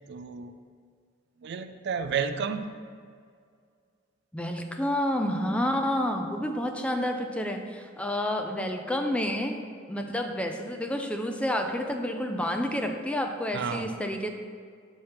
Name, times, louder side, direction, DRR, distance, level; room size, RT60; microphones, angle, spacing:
voice 1, 0.1-0.6 1.4-2.7 13.5-13.9, right 6 dB, 60° right, 10 dB, 0.4 m, -31 dB
voice 2, 4.3-9.6 9.9-14.3, left 1 dB, 5° left, 4 dB, 0.4 m, -29 dB
7.1 x 3.4 x 5.6 m, 2.1 s
head